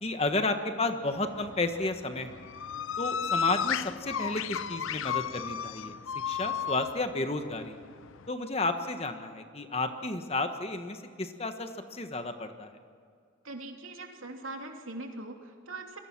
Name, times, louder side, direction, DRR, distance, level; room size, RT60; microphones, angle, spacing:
voice 1, 0.0-2.4 3.0-5.9 6.2-7.8 8.3-12.8, left 2 dB, 30° left, 7 dB, 1.5 m, -32 dB
sound 1, 1.1-8.3, left 7 dB, 80° left, 0.6 m, -34 dB
voice 2, 13.4-16.0, right 2 dB, 85° right, 3 dB, 2.9 m, -41 dB
27.0 x 21.5 x 6.1 m, 2.3 s
head